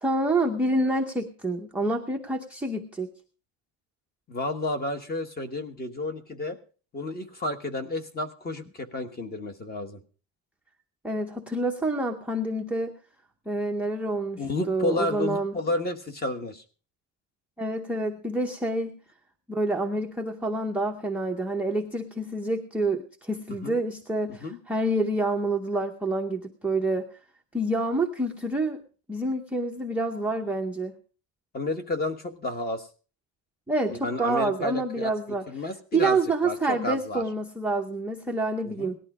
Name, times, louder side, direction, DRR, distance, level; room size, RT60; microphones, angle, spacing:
voice 1, 0.0-3.1 11.0-12.9 13.5-14.4 14.7-15.5 17.6-19.0 19.5-27.1 27.5-28.8 29.1-30.9 33.7-35.5 35.9-39.0, right 2 dB, 5° right, 0 dB, 0.7 m, -27 dB
voice 2, 4.3-6.6 6.9-10.0 14.4-16.6 23.6-23.8 24.4-24.6 31.5-32.9 33.9-35.1 35.5-36.2 36.4-37.2 38.8-38.9, left 2 dB, 20° left, 9 dB, 1.2 m, -31 dB
18.0 x 12.0 x 4.8 m, 0.38 s
cardioid pair, 180°, 49 cm